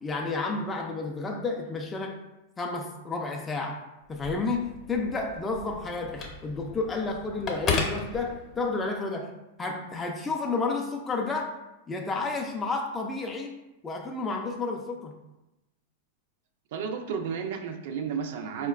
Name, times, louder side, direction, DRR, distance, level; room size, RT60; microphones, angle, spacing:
voice 1, 0.0-2.2 2.6-3.8 4.1-9.3 9.6-11.5 11.9-13.6 13.8-15.1, left 3 dB, 15° left, 1 dB, 0.4 m, -31 dB
Telephone, 4.1-8.9, left 4 dB, 30° left, 0.7 m, -35 dB
voice 2, 16.7-18.7, right 7 dB, 65° right, 5 dB, 0.4 m, -32 dB
4.3 x 2.1 x 2.3 m, 0.95 s
hypercardioid pair, 110°, 0 cm